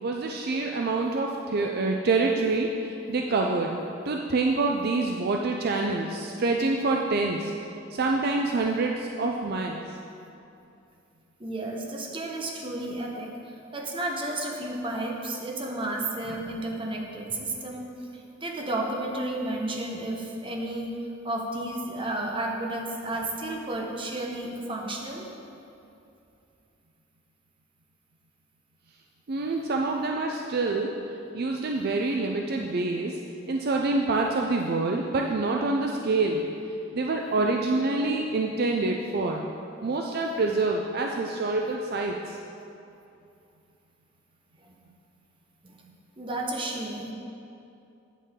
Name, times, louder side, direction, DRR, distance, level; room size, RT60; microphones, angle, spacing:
voice 1, 0.0-3.8 4.1-7.5 7.9-9.8 29.3-30.9 31.3-33.2 33.5-36.5 36.9-39.4 39.8-42.4, right 3 dB, 50° right, 1 dB, 0.5 m, -26 dB
voice 2, 11.4-20.9 21.2-25.3 44.6-44.8 45.6-45.8 46.2-47.1, right 1 dB, 25° right, 0 dB, 0.9 m, -32 dB
8.6 x 8.3 x 3.7 m, 2.7 s
head